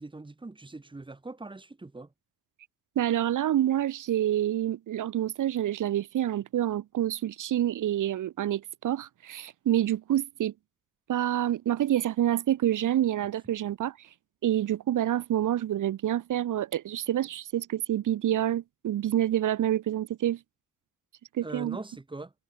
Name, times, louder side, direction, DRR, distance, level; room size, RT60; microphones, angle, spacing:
voice 1, 0.0-2.1 13.2-13.4 21.4-22.3, right 2 dB, 15° right, 1.8 m, -42 dB
voice 2, 3.0-10.5 11.1-14.0 14.4-20.4 21.3-21.8, right 12 dB, 60° right, 0.7 m, -27 dB
wide cardioid pair, 175°, 34 cm